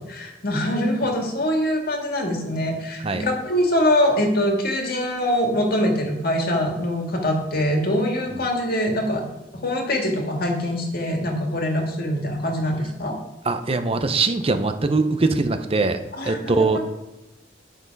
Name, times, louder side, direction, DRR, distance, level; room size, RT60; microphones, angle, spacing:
voice 1, 0.0-9.2 9.6-13.2 16.1-16.8, left 1 dB, 55° left, 2 dB, 1.9 m, -23 dB
voice 2, 13.5-16.8, right 3 dB, 30° right, 8 dB, 0.7 m, -21 dB
9.8 x 6.2 x 5.3 m, 0.98 s
head